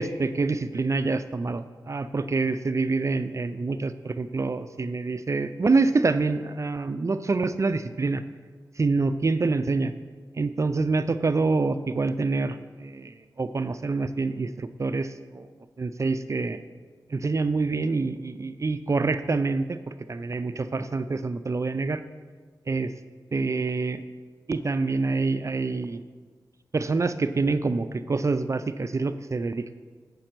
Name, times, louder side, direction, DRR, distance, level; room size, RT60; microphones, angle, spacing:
voice 1, 0.0-8.2 8.8-9.9 10.3-15.5 15.8-16.6 17.1-22.0 22.7-22.9 23.3-24.0 24.5-26.0 26.7-29.7, right 3 dB, 40° right, 11 dB, 0.4 m, -26 dB
7.7 x 5.2 x 5.9 m, 1.5 s
cardioid pair, 60°, 8 cm